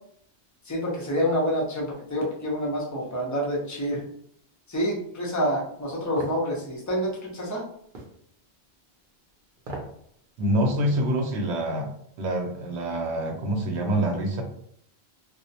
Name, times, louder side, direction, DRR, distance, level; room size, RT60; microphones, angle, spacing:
voice 1, 0.7-4.0 4.7-7.6, equal, 25° left, -3 dB, 0.4 m, -27 dB
sound 1, 6.2-6.4 7.9-8.2 9.6-10.0 10.4-10.5, right 2 dB, 55° right, 0.7 m, -37 dB
voice 2, 10.4-11.9 12.2-14.4, right 1 dB, 85° right, 2 dB, 0.9 m, -26 dB
2.3 x 2.0 x 2.7 m, 0.67 s
omnidirectional pair, 1.1 m